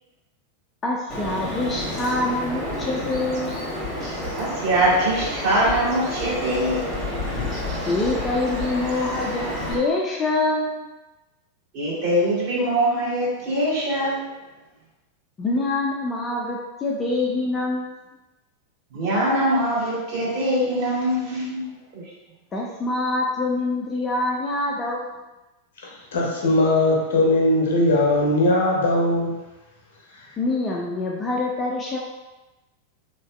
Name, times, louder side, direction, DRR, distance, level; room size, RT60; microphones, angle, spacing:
voice 1, 0.8-3.6 7.9-10.9 15.4-18.0 22.5-25.1 30.4-32.0, left 2 dB, 20° left, -2 dB, 0.4 m, -25 dB
Bird vocalization bird call bird song, 1.1-9.7, left 1 dB, 20° right, 1.1 m, -30 dB
voice 2, 4.3-6.8 11.7-14.2 18.9-21.6 21.9-22.0, right 1 dB, 45° right, -8 dB, 1.3 m, -22 dB
voice 3, 25.8-29.3, left 1 dB, 60° left, -2 dB, 0.6 m, -20 dB
3.1 x 2.4 x 2.3 m, 1.1 s
figure-of-eight pair, 90°, 0 cm